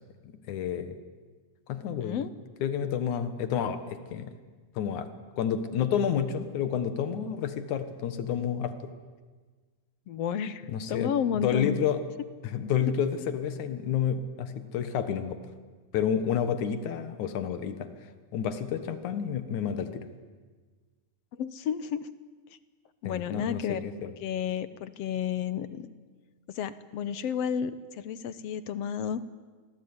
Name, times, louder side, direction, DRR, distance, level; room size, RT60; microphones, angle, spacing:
voice 1, 0.5-1.0 1.7-2.3 2.6-4.3 4.8-5.1 5.4-8.8 10.7-12.0 12.4-15.4 15.9-17.9 18.3-20.1 23.0-24.1, left 8 dB, 90° left, 10 dB, 2.9 m, -30 dB
voice 2, 10.1-11.8 21.4-22.1 23.0-23.9 24.2-25.9 26.5-29.2, left 8 dB, 65° left, 14 dB, 1.9 m, -31 dB
28.5 x 21.0 x 9.7 m, 1.4 s
omnidirectional pair, 3.3 m